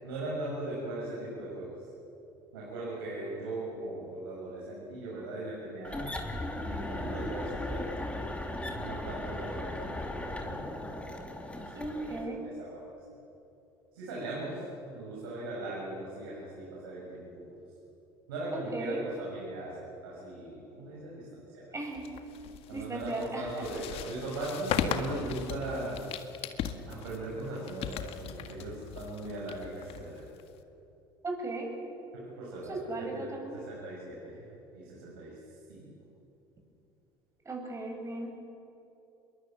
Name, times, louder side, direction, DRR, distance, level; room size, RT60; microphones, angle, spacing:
voice 1, 0.0-1.7 2.5-6.1 6.5-7.9 8.8-10.8 11.6-12.0 12.4-12.8 13.9-14.6 14.9-17.5 18.3-21.8 22.7-26.0 26.9-30.2 32.4-33.3 33.5-34.5 34.7-35.4 35.7-35.9, right 2 dB, 80° right, -6 dB, 7.4 m, -39 dB
sound 1, 5.8-12.3, left 1 dB, 10° left, 3.4 m, -37 dB
voice 2, 11.7-12.4 18.5-19.0 21.7-22.1 22.7-23.7 31.2-31.7 32.7-33.6 37.4-38.3, right 2 dB, 25° right, 2 dB, 8.0 m, -36 dB
sound 2, 21.9-30.6, left 9 dB, 55° left, 1.9 m, -38 dB
27.5 x 22.0 x 8.0 m, 2.9 s
hypercardioid pair, 70°, 12 cm